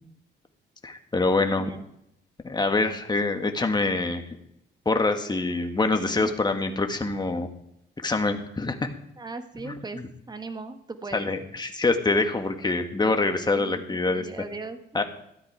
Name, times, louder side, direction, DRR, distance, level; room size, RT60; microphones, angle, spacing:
voice 1, 0.8-1.7 2.4-4.2 4.9-7.5 8.0-8.8 9.6-10.1 11.1-14.3 14.9-15.0, left 3 dB, 20° left, 6 dB, 1.7 m, -25 dB
voice 2, 1.4-1.8 6.0-6.4 9.2-10.0 10.3-11.3 13.5-14.8, right 3 dB, 20° right, 8 dB, 1.5 m, -38 dB
14.0 x 11.0 x 4.7 m, 0.78 s
cardioid pair, 90°, 20 cm